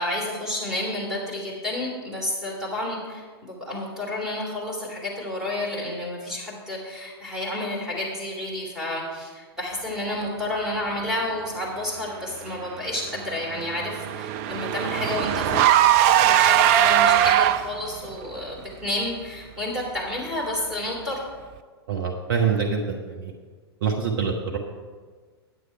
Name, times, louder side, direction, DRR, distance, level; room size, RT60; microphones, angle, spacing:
voice 1, 0.0-15.8 16.2-21.2, left 1 dB, 5° right, -4 dB, 3.0 m, -30 dB
Car / Engine, 12.9-17.9, right 11 dB, 35° right, 0.4 m, -20 dB
voice 2, 21.9-23.3 23.8-24.6, right 6 dB, 55° right, 2 dB, 1.0 m, -25 dB
9.8 x 8.1 x 4.5 m, 1.5 s
figure-of-eight pair, 100°, 14 cm